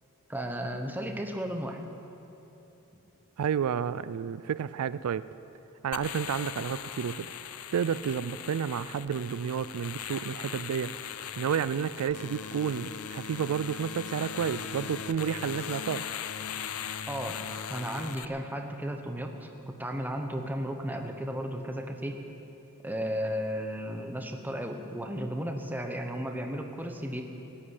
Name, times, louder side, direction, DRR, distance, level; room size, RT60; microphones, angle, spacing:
voice 1, 0.3-1.8 17.1-22.2 22.8-27.2, equal, 10° right, 4 dB, 1.0 m, -34 dB
voice 2, 3.4-5.3 5.8-7.3 7.7-10.9 11.4-16.1, right 7 dB, 75° right, 16 dB, 0.4 m, -31 dB
sound 1, 5.9-18.3, left 8 dB, 75° left, 0.6 m, -39 dB
16.0 x 8.8 x 9.8 m, 3.0 s
head